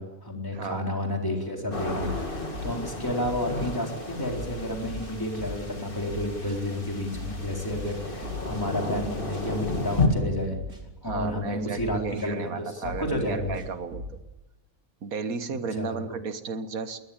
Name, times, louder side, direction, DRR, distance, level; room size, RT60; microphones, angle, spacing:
voice 1, 0.0-10.6 11.0-13.6 15.8-16.0, left 1 dB, 15° left, 1 dB, 4.1 m, -31 dB
voice 2, 0.5-0.9 11.0-14.0 15.0-17.0, right 5 dB, 75° right, 10 dB, 1.8 m, -34 dB
sound 1, 1.7-10.1, left 3 dB, 35° left, 2.5 m, -33 dB
sound 2, 1.9-2.9 3.2-3.7 4.3-5.8 6.1-6.6 7.1-8.6 8.9-9.4 10.0-11.4 11.8-12.3 12.8-14.2, equal, 90° right, 4.0 m, -39 dB
22.0 x 18.5 x 8.8 m, 1.0 s
omnidirectional pair, 1.5 m